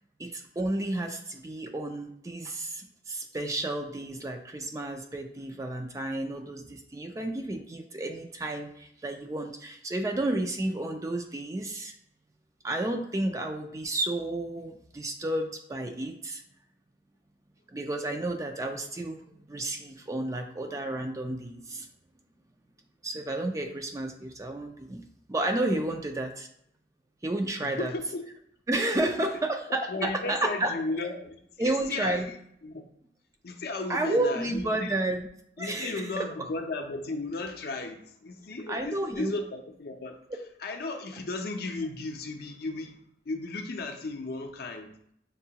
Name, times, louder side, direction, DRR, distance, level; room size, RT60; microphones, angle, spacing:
voice 1, 0.2-11.9 12.6-16.4 17.7-21.9 23.0-25.0 25.3-26.5 27.2-27.9 28.7-30.7 31.6-32.3 33.9-35.2 35.6-36.3 38.7-39.3, right 1 dB, 20° right, 5 dB, 0.4 m, -31 dB
voice 2, 27.6-28.2 29.2-29.3 29.7-32.4 32.6-32.8 33.4-35.0 35.6-40.2 40.6-43.0 43.3-44.9, left 2 dB, 60° left, 5 dB, 0.5 m, -35 dB
6.5 x 2.3 x 2.8 m, 0.70 s
head